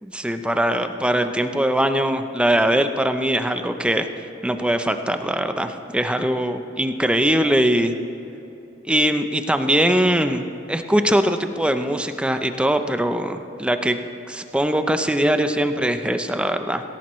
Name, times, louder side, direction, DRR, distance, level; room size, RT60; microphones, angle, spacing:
voice 1, 0.0-4.1 4.4-7.9 8.9-14.0 14.3-16.8, right 1 dB, 5° right, 7 dB, 0.6 m, -21 dB
18.5 x 17.5 x 3.1 m, 2.9 s
head